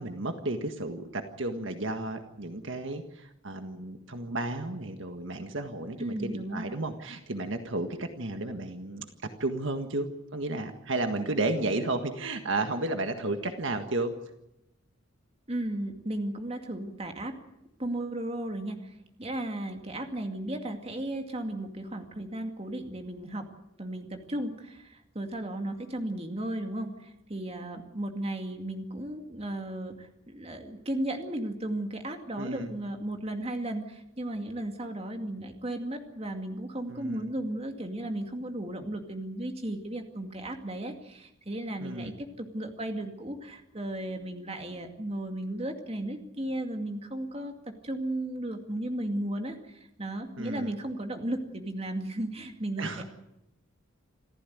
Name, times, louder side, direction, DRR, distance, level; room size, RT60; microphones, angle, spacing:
voice 1, 0.0-14.1 32.4-32.7 36.9-37.3 41.8-42.2 50.4-50.7 52.8-53.0, right 2 dB, 60° right, 7 dB, 1.7 m, -33 dB
voice 2, 6.0-6.7 15.5-17.4 17.8-23.5 23.8-53.0, right 1 dB, 30° right, 5 dB, 2.3 m, -35 dB
27.0 x 14.5 x 9.4 m, 0.86 s
head